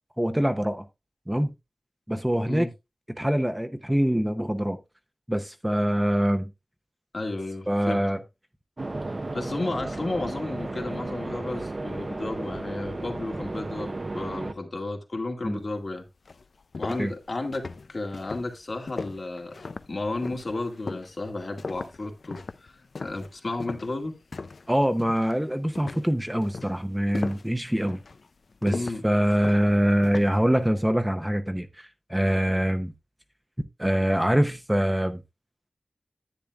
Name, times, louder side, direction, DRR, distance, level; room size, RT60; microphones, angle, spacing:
voice 1, 0.2-0.8 1.3-1.5 2.1-2.7 3.2-4.8 5.3-6.5 7.7-8.2 15.4-15.6 17.0-17.1 24.7-28.0 28.6-32.9 33.8-35.2, equal, 10° right, 0.7 m, -24 dB
voice 2, 2.3-2.7 7.1-8.1 9.3-16.1 16.8-19.6 19.9-22.7 23.0-24.2 28.7-29.0, left 2 dB, 60° left, 2.1 m, -33 dB
sound 1, 8.8-14.5, right 2 dB, 40° right, 0.7 m, -34 dB
sound 2, 15.8-15.9 16.2-24.7 25.0-25.4 25.7-30.5, left 4 dB, 75° left, 0.4 m, -38 dB
10.5 x 9.3 x 2.4 m
wide cardioid pair, 90°, 0 cm